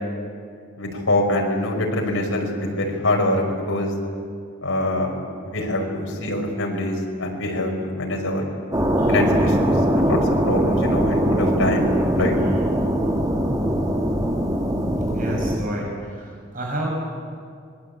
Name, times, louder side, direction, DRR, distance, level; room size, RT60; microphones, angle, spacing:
voice 1, 0.8-3.9 4.6-8.4 9.1-10.2 10.4-11.9 12.2-12.3, left 1 dB, 85° left, 1 dB, 5.6 m, -24 dB
sound 1, 8.7-15.6, equal, 15° right, 2.0 m, -21 dB
voice 2, 15.1-16.9, right 1 dB, 40° right, -2 dB, 7.4 m, -30 dB
26.0 x 21.5 x 8.7 m, 2.3 s
head